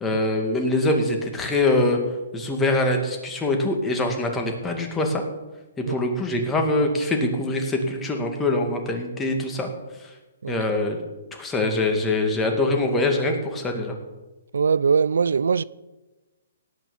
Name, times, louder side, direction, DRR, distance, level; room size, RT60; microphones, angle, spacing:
voice 1, 0.0-2.0 2.3-5.2 5.8-9.7 10.5-11.0 11.4-13.9, left 2 dB, 10° left, 2.1 m, -23 dB
voice 2, 14.5-15.6, right 5 dB, 80° right, 0.3 m, -21 dB
17.5 x 6.2 x 7.1 m
hypercardioid pair, 145°, 0 cm